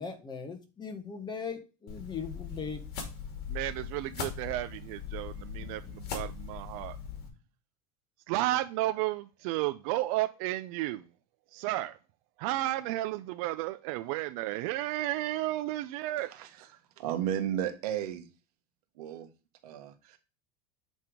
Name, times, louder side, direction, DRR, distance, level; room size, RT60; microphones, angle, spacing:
voice 1, 0.0-2.8, left 5 dB, 25° left, 1.6 m, -39 dB
sound 1, 1.9-7.3, left 6 dB, 55° left, 2.6 m, -40 dB
voice 2, 3.5-7.0 8.3-11.0 11.5-12.0 12.4-16.3, right 16 dB, 65° right, 0.6 m, -32 dB
voice 3, 17.0-18.3 19.0-19.3 19.6-20.2, right 10 dB, 80° right, 1.7 m, -33 dB
8.4 x 3.6 x 4.9 m
supercardioid pair, 115°, 19 cm